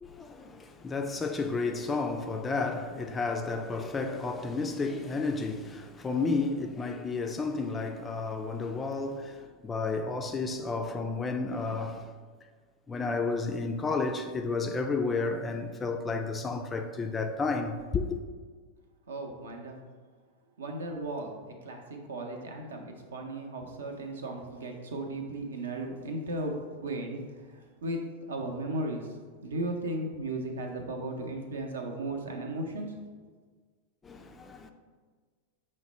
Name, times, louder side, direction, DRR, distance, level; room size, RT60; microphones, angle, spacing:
voice 1, 0.0-12.1 12.9-18.2 34.0-34.7, left 3 dB, 15° left, 0.3 m, -32 dB
voice 2, 19.1-19.7 20.6-28.0 28.3-29.2 29.4-32.9, right 2 dB, 65° right, 0.6 m, -36 dB
5.7 x 2.1 x 4.2 m
figure-of-eight pair, 90°, 0 cm